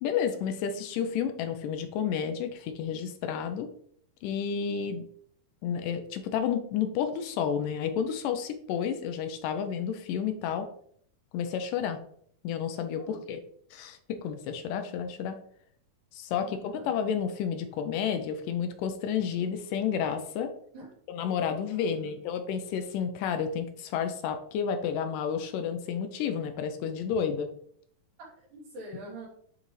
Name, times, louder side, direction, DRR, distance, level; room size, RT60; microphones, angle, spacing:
voice 1, 0.0-3.7 4.2-5.1 5.6-10.7 11.3-12.0 12.4-13.4 13.7-15.4 16.1-20.5 21.1-27.5, left 7 dB, 80° left, 7 dB, 2.2 m, -31 dB
voice 2, 12.9-13.2 16.3-16.9 20.7-20.9 21.7-22.2 28.2-29.3, right 1 dB, 90° right, -7 dB, 5.0 m, -46 dB
10.0 x 3.9 x 3.2 m, 0.63 s
omnidirectional pair, 3.9 m